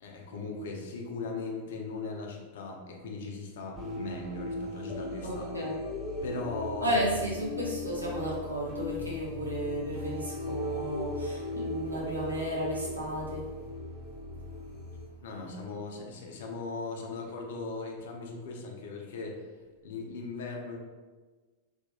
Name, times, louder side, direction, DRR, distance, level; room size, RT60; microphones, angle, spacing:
voice 1, 0.0-5.7 6.2-7.1 15.2-19.4 19.8-20.8, left 3 dB, 60° left, 1 dB, 0.4 m, -38 dB
sound 1, 3.7-15.0, left 2 dB, 25° right, 0.8 m, -38 dB
voice 2, 5.2-5.8 6.8-13.4, right 1 dB, 80° right, -4 dB, 0.6 m, -33 dB
2.4 x 2.1 x 2.7 m, 1.3 s
figure-of-eight pair, 90°, 0 cm